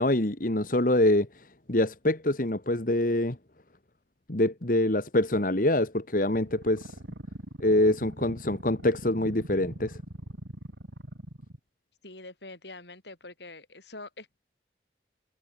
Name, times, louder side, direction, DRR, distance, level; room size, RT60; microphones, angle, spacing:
voice 1, 0.0-3.4 4.3-7.0 7.6-10.0, left 1 dB, 50° left, 1.7 m, -25 dB
sound 1, 6.3-11.6, right 1 dB, 85° right, 3.0 m, -42 dB
voice 2, 12.0-14.4, left 2 dB, 70° left, 8.0 m, -45 dB
head